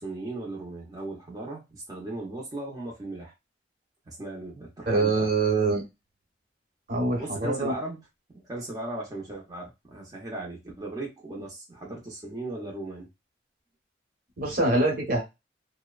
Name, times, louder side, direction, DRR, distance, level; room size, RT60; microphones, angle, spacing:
voice 1, 0.0-3.3 4.1-5.3 7.2-8.0 8.4-13.1, right 2 dB, 20° right, -3 dB, 0.7 m, -37 dB
voice 2, 4.9-5.8 6.9-7.7 14.4-15.2, right 3 dB, 55° right, 1 dB, 1.0 m, -24 dB
2.7 x 2.1 x 2.3 m, 0.23 s
head